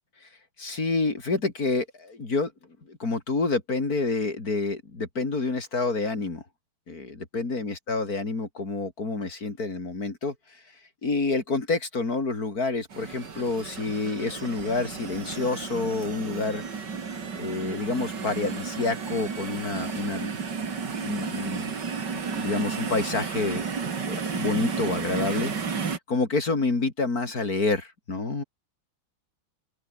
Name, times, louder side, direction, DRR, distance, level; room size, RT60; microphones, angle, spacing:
voice 1, 0.6-2.5 2.9-6.4 6.9-10.3 11.0-16.9 17.4-20.3 21.0-21.7 22.3-23.7 24.1-25.5 25.8-28.4, left 3 dB, 45° left, 4.2 m, -28 dB
sound 1, 12.9-26.0, right 5 dB, 55° right, 3.1 m, -33 dB
open air
omnidirectional pair, 2.2 m